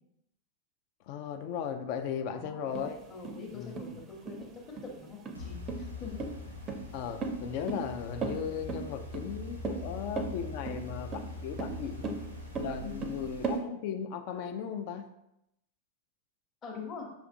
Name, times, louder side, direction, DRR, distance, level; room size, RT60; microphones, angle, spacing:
voice 1, 1.1-3.0 3.5-4.0 6.9-12.2 12.6-15.1, left 8 dB, 45° left, 7 dB, 0.3 m, -37 dB
voice 2, 2.2-2.8 3.1-4.5 4.8-6.2 12.8-13.1 16.6-17.1, left 5 dB, 25° left, -2 dB, 0.9 m, -44 dB
sound 1, 2.7-13.6, right 4 dB, 30° right, 0.5 m, -37 dB
sound 2, 5.3-13.6, left 2 dB, 85° right, 0.6 m, -43 dB
6.0 x 2.5 x 2.6 m, 0.83 s
figure-of-eight pair, 90°, 0 cm